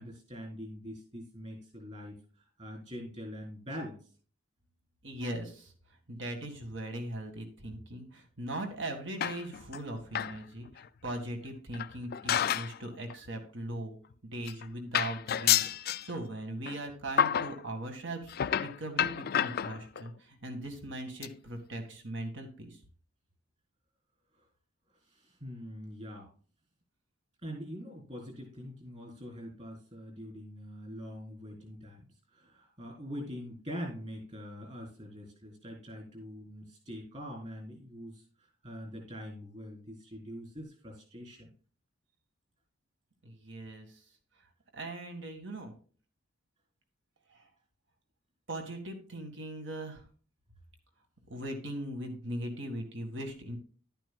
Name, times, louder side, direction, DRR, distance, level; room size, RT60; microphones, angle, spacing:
voice 1, 0.0-2.2 2.6-4.0 24.3-24.5 25.1-26.3 27.4-38.2 38.6-41.5, equal, 35° right, 1 dB, 4.0 m, -43 dB
voice 2, 5.0-5.7 6.1-14.0 14.2-22.8 43.2-43.9 44.7-45.7 47.3-47.4 48.5-50.0 51.3-53.6, right 1 dB, 60° right, 5 dB, 1.9 m, -39 dB
sound 1, 9.2-9.8 10.1-10.4 10.8-10.9 11.7-12.8 13.1-13.3 14.1-14.2 14.5-14.7 14.9-16.1 16.7-16.8 17.2-17.6 18.3-20.1 20.8-20.9 21.2-21.3 21.7-21.8 21.9-22.0, left 10 dB, 50° left, 0.4 m, -30 dB
11.5 x 9.0 x 2.3 m, 0.42 s
head